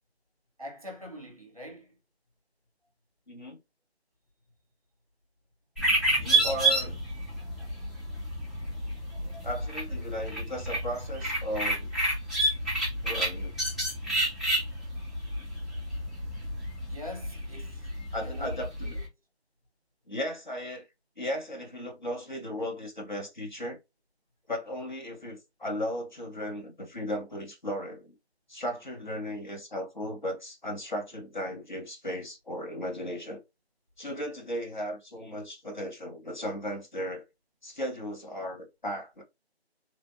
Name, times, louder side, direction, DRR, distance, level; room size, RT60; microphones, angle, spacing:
voice 1, 0.6-2.0 16.8-18.5 18.8-19.0, left 1 dB, 35° right, 1.0 m, -44 dB
voice 2, 3.3-3.6 6.2-7.0 9.4-11.9 13.0-13.6 18.1-19.0 20.1-20.9 21.2-23.8 24.5-28.1 28.5-33.4 34.0-37.2 37.6-39.2, equal, 45° left, 1.0 m, -36 dB
sound 1, 5.8-19.1, right 1 dB, ahead, 0.5 m, -30 dB
3.3 x 2.1 x 2.4 m
figure-of-eight pair, 175°, 33 cm